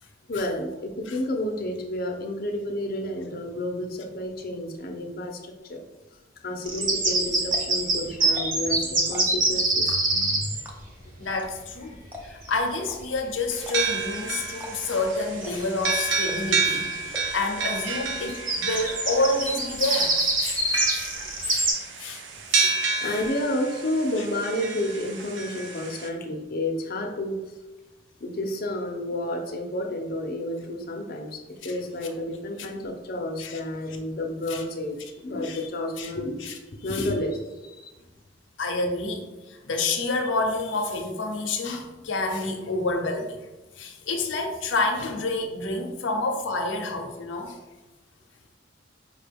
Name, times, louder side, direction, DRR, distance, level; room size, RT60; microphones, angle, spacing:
voice 1, 0.3-5.8 6.4-10.7 19.9-20.0 22.6-22.7 23.0-27.4 28.2-36.6 36.8-37.9, left 1 dB, 55° left, 2 dB, 0.6 m, -30 dB
sound 1, 6.6-10.6 14.0-14.2 14.7-15.1 15.4-15.5 15.8-16.9 18.3-21.7, right 2 dB, 45° right, 1.1 m, -25 dB
sound 2, 7.4-7.8 8.2-8.7 9.0-9.4 9.9-10.3 10.6-11.0 11.4-11.5 11.7-11.8 12.1-12.5 12.8-13.0 13.6-14.0 14.5-14.7 15.0-15.1 15.4-15.8 16.2-16.6 17.1-17.4 18.0-18.1 18.4-18.5 18.8-19.2 19.5-20.1, left 1 dB, 10° right, 0.6 m, -41 dB
voice 2, 11.2-12.0 12.2-21.2 21.4-21.7 22.0-22.2 22.5-22.8 23.1-23.2 33.4-33.6 34.5-34.6 35.4-35.6 36.0-36.1 36.4-36.5 36.9-37.0 38.6-43.4 43.8-47.6, left 2 dB, 85° left, 4 dB, 0.6 m, -29 dB
sound 3, 13.5-26.1, right 4 dB, 70° right, 0.5 m, -30 dB
5.2 x 2.2 x 3.4 m, 1.1 s
head